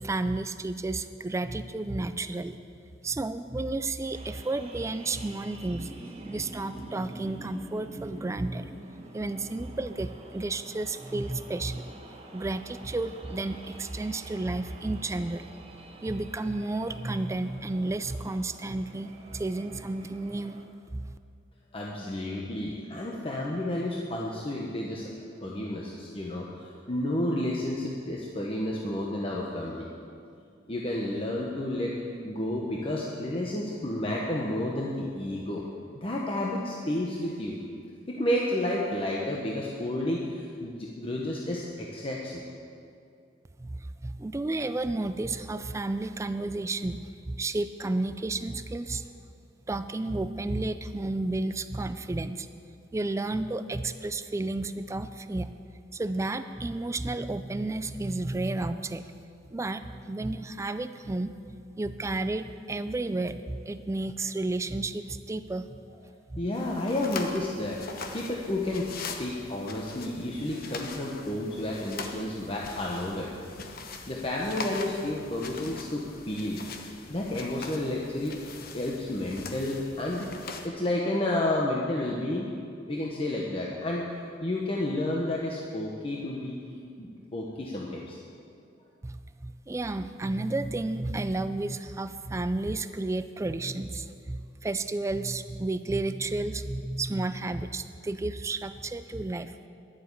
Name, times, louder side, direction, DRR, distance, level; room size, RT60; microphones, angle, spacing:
voice 1, 0.0-2.6 3.0-5.9 6.3-8.7 9.1-11.9 12.3-15.4 16.0-20.6 20.9-21.0 43.6-49.1 49.7-52.5 52.9-55.5 55.9-59.1 59.5-61.3 61.8-65.8 66.3-66.4 89.0-99.5, right 2 dB, 15° right, 11 dB, 0.3 m, -32 dB
sound 1, 4.1-20.6, right 2 dB, 35° right, 1.2 m, -47 dB
voice 2, 21.7-29.9 30.7-35.6 36.0-37.6 38.1-42.4 66.4-67.9 68.1-68.9 69.2-73.3 74.1-76.7 77.1-80.3 80.6-82.5 82.8-84.1 84.4-86.6 87.0-88.2, left 1 dB, 30° left, -3 dB, 1.0 m, -31 dB
sound 2, 66.5-80.7, left 3 dB, 55° left, 1.0 m, -41 dB
11.0 x 7.7 x 8.2 m, 2.4 s
head